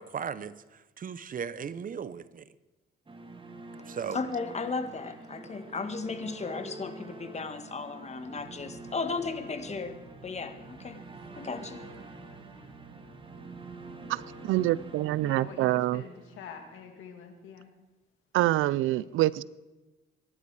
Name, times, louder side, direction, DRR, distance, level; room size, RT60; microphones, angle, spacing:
voice 1, 0.0-2.5 3.9-4.2, right 7 dB, 45° right, 16 dB, 0.8 m, -37 dB
sound 1, 3.1-17.2, right 2 dB, 25° right, 2.1 m, -47 dB
voice 2, 4.1-10.0 10.2-11.0 11.3-11.8, left 4 dB, 35° left, 9 dB, 1.7 m, -35 dB
sound 2, 7.9-16.2, right 4 dB, 60° right, 4.3 m, -53 dB
voice 3, 14.1-16.0 18.3-19.4, right 16 dB, 90° right, 21 dB, 0.5 m, -26 dB
voice 4, 15.2-17.7 19.0-19.3, left 7 dB, 90° left, 5 dB, 2.4 m, -46 dB
23.5 x 11.0 x 4.8 m, 1.1 s
cardioid pair, 90°, 20 cm